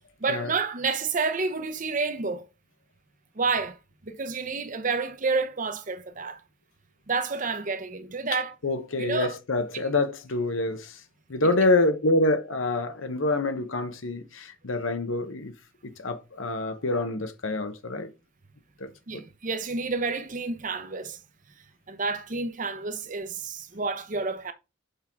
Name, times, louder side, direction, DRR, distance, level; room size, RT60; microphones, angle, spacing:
voice 1, 0.2-2.5 3.4-3.8 4.0-6.4 7.1-8.5 9.0-9.4 11.4-11.5 19.1-21.2 21.9-24.5, right 4 dB, 40° right, 0.7 m, -29 dB
voice 2, 8.6-11.0 11.3-15.5 15.8-18.1 18.8-18.9, left 2 dB, 90° left, 1.0 m, -26 dB
6.4 x 4.6 x 3.6 m
head